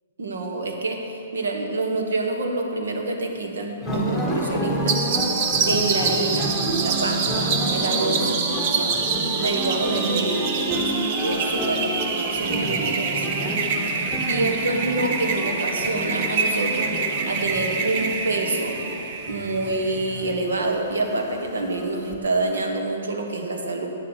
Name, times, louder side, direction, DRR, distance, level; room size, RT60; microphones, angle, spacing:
voice 1, 0.2-5.0 5.7-8.3 8.6-9.0 9.4-10.9 11.2-13.6 13.9-18.8 19.3-23.9, right 2 dB, 75° right, 3 dB, 1.5 m, -27 dB
sound 1, 3.8-22.1, equal, ahead, 1.5 m, -30 dB
sound 2, 4.9-20.1, right 5 dB, 45° right, 0.9 m, -26 dB
9.9 x 7.0 x 7.0 m, 2.9 s
hypercardioid pair, 130°, 0 cm